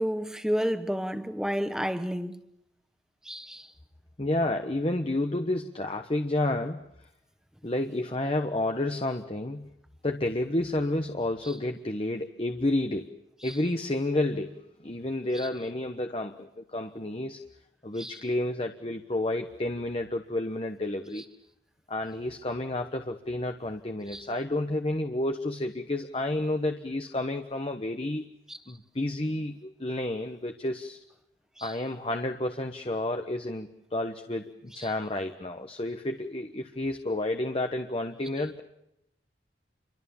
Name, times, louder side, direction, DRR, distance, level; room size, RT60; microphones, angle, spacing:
voice 1, 0.0-2.4 3.2-3.7 13.4-13.5 18.0-18.2 24.1-24.2 28.5-28.6 31.6-31.7 34.8-34.9, equal, 5° right, 1.2 m, -31 dB
voice 2, 4.2-6.8 7.6-9.7 10.0-13.1 13.4-17.4 17.8-21.2 21.9-28.3 28.7-31.0 31.6-38.6, left 1 dB, 30° left, 1.2 m, -30 dB
29.0 x 24.0 x 7.2 m
head